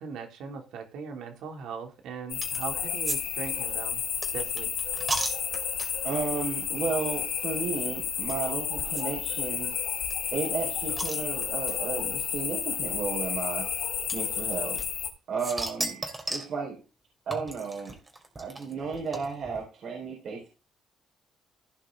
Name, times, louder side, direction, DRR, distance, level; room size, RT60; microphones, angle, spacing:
voice 1, 0.0-4.0 4.3-4.7, right 6 dB, 85° right, 3 dB, 2.8 m, -39 dB
sound 1, 2.3-15.1, left 8 dB, 75° left, 3.0 m, -31 dB
sound 2, 2.4-2.7 3.1-3.2 3.4-6.1 6.8-6.9 7.2-7.3 8.3-8.4 8.9-9.0 9.3-9.4 9.6-9.7 10.1-11.7 12.6-12.7 14.1-15.1 15.4-16.6 17.3-19.6, right 2 dB, 20° right, 3.1 m, -35 dB
voice 2, 6.0-9.7 10.3-13.6 14.1-14.8 15.3-16.0 16.3-16.8 17.3-17.9 18.4-20.5, right 5 dB, 65° right, -2 dB, 4.6 m, -33 dB
16.0 x 5.4 x 3.8 m, 0.32 s
cardioid pair, 90°, 0 cm